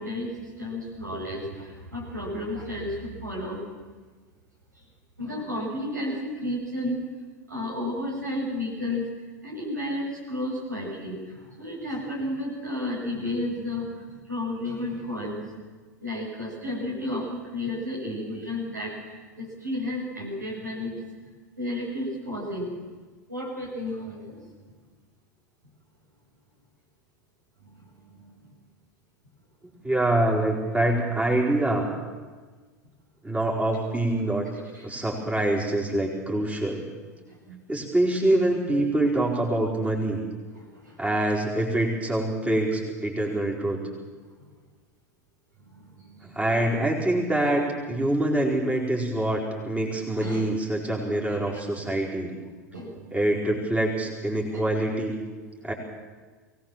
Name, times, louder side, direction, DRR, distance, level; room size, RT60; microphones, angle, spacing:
voice 1, 0.0-3.6 5.2-7.0 7.5-9.1 9.4-15.4 16.0-20.9 21.6-22.7 23.3-24.7 27.6-28.5 34.7-35.1 37.3-37.6 40.5-41.0 44.4-44.5 45.6-46.4 49.7-49.9 50.1-50.5 51.5-51.6 52.7-53.2 54.5-54.6, left 1 dB, 85° right, -2 dB, 6.8 m, -33 dB
voice 2, 29.8-31.9 33.2-34.5 34.8-36.8 37.7-40.2 41.0-43.8 46.2-52.3 53.1-55.2 55.6-55.7, right 1 dB, 15° right, -2 dB, 4.8 m, -25 dB
22.5 x 18.0 x 7.5 m, 1.4 s
figure-of-eight pair, 85°, 9 cm